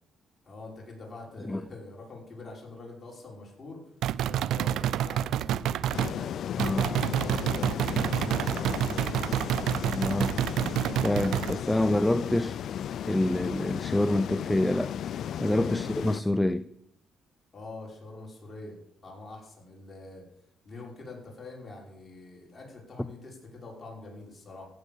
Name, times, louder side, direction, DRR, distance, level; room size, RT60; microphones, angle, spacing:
voice 1, 0.5-3.8 4.2-6.3 6.7-9.7 15.7-15.9 17.5-18.8 19.0-20.2 20.6-24.7, left 2 dB, 30° left, 5.6 m, -44 dB
sound 1, 4.0-6.2 6.6-11.6, right 11 dB, 80° right, 0.4 m, -28 dB
sound 2, 5.9-16.2, left 9 dB, 65° left, 0.4 m, -35 dB
voice 2, 9.9-10.4 11.0-12.6 13.1-14.9 15.4-16.7, left 1 dB, 10° left, 0.5 m, -26 dB
15.5 x 8.1 x 7.1 m
cardioid pair, 90°, 0 cm